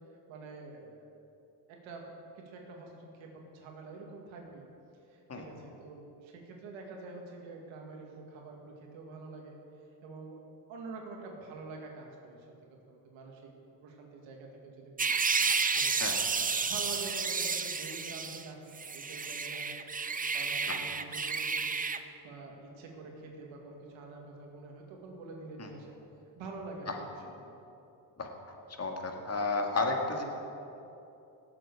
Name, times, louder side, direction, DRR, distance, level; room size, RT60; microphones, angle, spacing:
voice 1, 0.1-1.1 1.7-2.1 2.4-4.7 5.1-9.6 10.0-10.4 10.7-12.5 12.9-13.5 13.8-15.2 15.4-15.9 16.6-19.9 20.3-21.8 22.2-26.0 26.4-27.5, right 3 dB, 90° right, 1 dB, 2.2 m, -46 dB
sound 1, 15.0-18.5 18.7-22.0, right 5 dB, 20° right, 0.6 m, -31 dB
voice 2, 28.8-30.2, left 3 dB, 35° left, 2 dB, 2.0 m, -31 dB
18.5 x 7.7 x 4.8 m, 2.8 s
cardioid pair, 85°, 45 cm